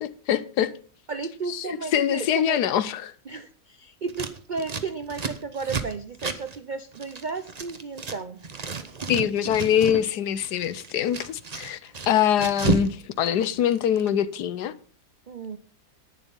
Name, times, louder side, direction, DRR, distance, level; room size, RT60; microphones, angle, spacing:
voice 1, 0.0-0.7 1.5-3.1 9.1-14.7, left 9 dB, 75° left, 1.3 m, -24 dB
voice 2, 1.1-2.6 3.3-8.4 15.3-15.6, right 4 dB, 65° right, 0.4 m, -33 dB
Scissors, 4.1-8.2 8.4-10.0 10.3-12.9 13.2-14.1, right 4 dB, 30° right, 0.8 m, -32 dB
11.0 x 9.6 x 5.4 m
omnidirectional pair, 1.8 m